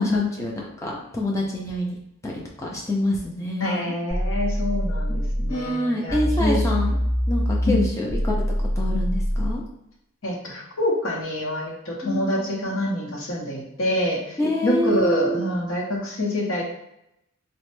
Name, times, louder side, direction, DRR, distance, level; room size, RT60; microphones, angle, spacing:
voice 1, 0.0-2.0 2.2-2.3 2.6-3.9 5.5-7.0 7.3-9.6 12.0-12.5 14.4-15.5, left 1 dB, 15° left, -2 dB, 0.4 m, -27 dB
voice 2, 3.6-6.6 7.7-7.8 10.2-14.4 14.6-16.6, left 1 dB, 70° left, -2 dB, 0.8 m, -26 dB
sound 1, 4.1-5.6 6.1-9.6, equal, 40° left, 1.4 m, -24 dB
3.0 x 2.1 x 3.0 m, 0.82 s
head